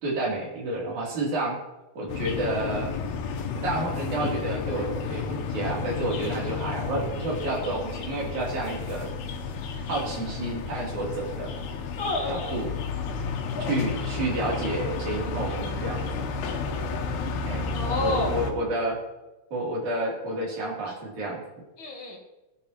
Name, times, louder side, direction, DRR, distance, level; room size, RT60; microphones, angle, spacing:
voice 1, 0.0-1.6 2.0-2.9 3.6-9.1 9.9-11.5 12.3-12.7 13.7-16.3 17.4-19.0 19.5-21.4, right 2 dB, 50° right, -3 dB, 4.1 m, -30 dB
sound 1, 2.1-18.5, left 5 dB, 75° left, 3.2 m, -32 dB
voice 2, 12.0-12.6 13.6-13.7 17.7-18.3 21.8-22.2, left 2 dB, 35° left, -2 dB, 2.4 m, -30 dB
19.0 x 10.5 x 2.9 m, 1.1 s
omnidirectional pair, 4.8 m